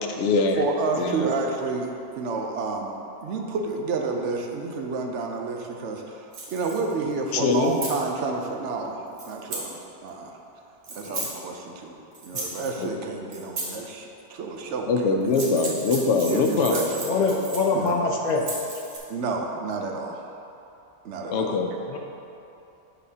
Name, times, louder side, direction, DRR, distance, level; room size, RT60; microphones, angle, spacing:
voice 1, 0.0-0.6 1.0-1.3 7.3-7.7 11.0-11.3 12.8-12.9 14.9-16.8 21.3-21.7, left 4 dB, 85° left, 3 dB, 0.9 m, -23 dB
voice 2, 0.6-3.0 3.2-10.4 10.9-15.1 16.3-17.1 17.7-18.0 19.1-20.2 21.0-21.5, right 4 dB, 90° right, 2 dB, 1.0 m, -30 dB
sound 1, 6.3-6.9 7.5-8.0 9.2-9.7 10.8-11.3 12.1-12.8 13.3-13.7 15.2-17.9 18.3-19.0, right 2 dB, 70° right, 1.3 m, -35 dB
voice 3, 17.0-18.4 21.9-22.0, left 3 dB, 55° left, 1 dB, 0.5 m, -23 dB
11.0 x 4.0 x 2.8 m, 2.8 s
omnidirectional pair, 1.2 m